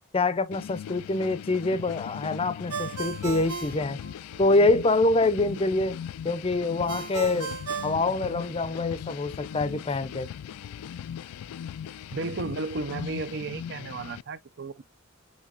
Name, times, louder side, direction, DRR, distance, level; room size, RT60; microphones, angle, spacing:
voice 1, 0.1-4.0 4.4-7.5 7.8-10.3, left 2 dB, 25° left, 0.5 m, -25 dB
sound 1, 0.5-14.2, left 9 dB, 90° left, 0.3 m, -39 dB
Ringtone, 2.7-4.6 6.9-8.8, right 5 dB, 90° right, 1.2 m, -36 dB
voice 2, 12.1-14.8, right 3 dB, 50° right, 0.5 m, -33 dB
7.4 x 2.9 x 2.5 m
head